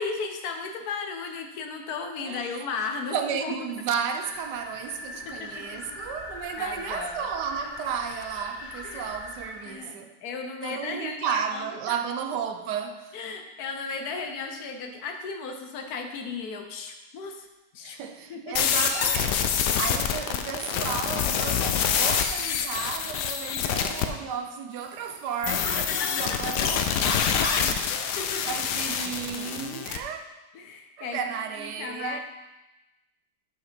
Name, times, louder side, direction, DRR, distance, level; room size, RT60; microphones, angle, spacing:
voice 1, 0.0-3.7 5.2-6.0 6.6-7.2 8.8-9.1 9.6-12.0 13.1-17.5 17.7-18.0 18.3-18.6 23.5-23.7 25.6-27.0 27.9-28.4 30.5-31.2 31.6-32.2, left 4 dB, 70° left, 1.2 m, -35 dB
voice 2, 2.2-2.6 3.1-10.1 10.6-13.2 17.8-28.2 28.5-30.2 31.0-32.2, right 7 dB, 85° right, 1.3 m, -33 dB
sound 1, 4.2-9.8, left 2 dB, 50° left, 0.5 m, -40 dB
sound 2, 18.6-24.1 25.4-30.0, left 8 dB, 85° left, 1.2 m, -26 dB
6.5 x 5.6 x 5.0 m
omnidirectional pair, 1.8 m